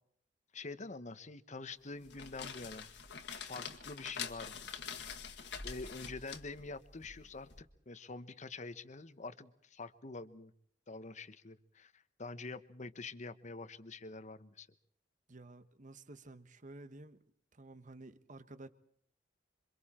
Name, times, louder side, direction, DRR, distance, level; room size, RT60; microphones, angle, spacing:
voice 1, 0.5-2.9 3.3-5.0 5.3-10.5 10.9-14.7, left 3 dB, 40° left, 1.1 m, -46 dB
sound 1, 1.9-7.6, left 6 dB, 70° left, 2.0 m, -46 dB
voice 2, 15.3-17.2 17.5-18.7, right 2 dB, 45° right, 1.3 m, -52 dB
27.5 x 25.0 x 4.4 m
head